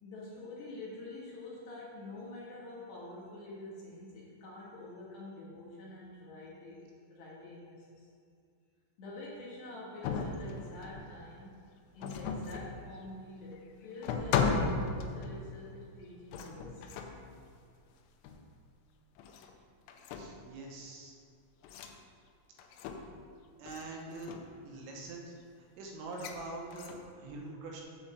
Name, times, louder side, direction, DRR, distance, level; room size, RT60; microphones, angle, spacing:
voice 1, 0.0-6.8 7.1-8.1 9.0-11.5 11.9-17.0, left 2 dB, 65° left, -6 dB, 3.4 m, -46 dB
sound 1, 10.0-11.2 12.0-12.8 13.5-13.6 14.0-15.5 16.3-17.3 18.2-18.5 19.2-19.6 19.9-20.5 21.6-21.9 22.6-23.2 23.7-23.9 24.1-24.5 26.1-26.4 26.7-27.1, left 5 dB, 85° left, 3.3 m, -35 dB
voice 2, 20.1-21.2 23.6-24.4 24.6-27.8, right 2 dB, 80° right, -1 dB, 3.8 m, -44 dB
8.4 x 5.0 x 7.4 m, 2.3 s
omnidirectional pair, 5.9 m